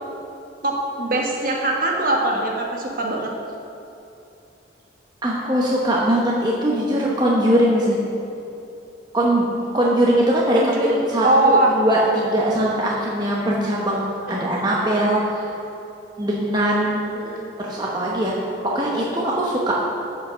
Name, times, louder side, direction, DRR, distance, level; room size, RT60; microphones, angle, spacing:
voice 1, 0.6-3.3 10.5-11.8 14.3-14.7 17.1-17.5, right 2 dB, 50° right, 0 dB, 1.3 m, -22 dB
voice 2, 5.2-8.0 9.1-9.4 9.7-15.5 16.2-17.0 17.6-18.3 18.6-19.7, right 1 dB, 20° right, -4 dB, 0.9 m, -21 dB
9.4 x 5.7 x 6.0 m, 2.8 s
head